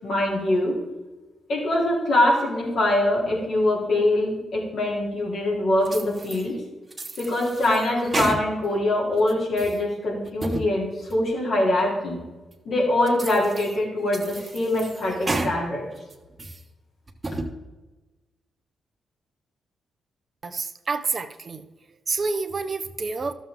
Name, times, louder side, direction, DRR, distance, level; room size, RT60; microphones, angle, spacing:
voice 1, 0.0-0.8 1.5-6.6 7.2-12.2 12.7-15.9, left 1 dB, 70° left, -4 dB, 3.5 m, -23 dB
sound 1, 5.9-6.5 6.9-8.8 9.2-9.8 10.3-10.7 11.1-11.2 11.8-11.9 12.5-12.6 13.1-13.8 14.1-15.6 16.0-16.6 17.1-17.5, right 2 dB, 30° right, 1.3 m, -32 dB
voice 2, 20.4-21.7 22.1-23.3, right 4 dB, 50° right, 9 dB, 0.8 m, -28 dB
12.5 x 7.3 x 3.8 m, 1.2 s
supercardioid pair, 55°, 0 cm